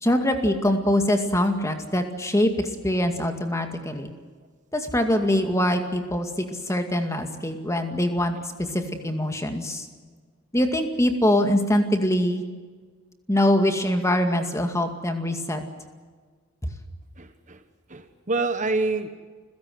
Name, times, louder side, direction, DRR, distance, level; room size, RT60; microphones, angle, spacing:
voice 1, 0.0-4.1 4.7-8.4 8.7-9.9 10.5-12.4 13.3-15.6 16.6-16.7, left 1 dB, 15° left, 6 dB, 2.2 m, -23 dB
voice 2, 17.2-17.6 17.9-19.1, right 3 dB, 35° right, 9 dB, 1.3 m, -27 dB
29.5 x 16.5 x 7.8 m, 1.5 s
head